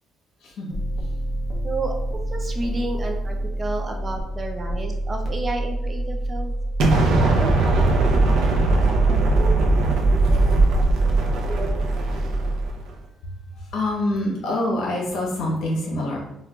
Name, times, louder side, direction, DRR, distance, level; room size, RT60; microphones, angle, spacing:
voice 1, 0.4-1.1 9.0-9.4 10.9-11.0 13.2-16.2, left 1 dB, 65° left, -2 dB, 0.9 m, -27 dB
sound 1, 0.7-12.7, right 1 dB, 25° left, 0.6 m, -27 dB
voice 2, 1.6-1.9 2.3-6.5 7.2-7.5 7.7-7.8 9.0-9.5 10.3-10.6 11.0-11.1 11.5-11.8, right 2 dB, 20° right, 3 dB, 0.3 m, -31 dB
Explosion, 6.8-12.8, right 2 dB, 75° right, 0.6 m, -20 dB
4.3 x 2.4 x 2.3 m, 0.87 s
cardioid pair, 170°, 0 cm